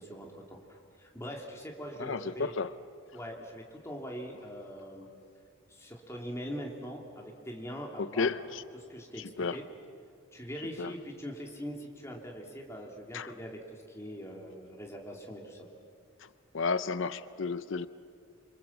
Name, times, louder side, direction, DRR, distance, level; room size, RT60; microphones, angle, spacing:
voice 1, 0.0-2.5 3.1-5.1 5.7-8.3 8.9-9.7 10.3-15.6, equal, 15° left, 0 dB, 3.0 m, -42 dB
voice 2, 2.0-2.7 8.0-8.6 9.2-9.6 10.8-10.9 13.1-13.3 16.2-16.3 16.5-17.9, left 4 dB, 60° left, 14 dB, 0.6 m, -32 dB
28.5 x 26.0 x 7.3 m, 2.4 s
head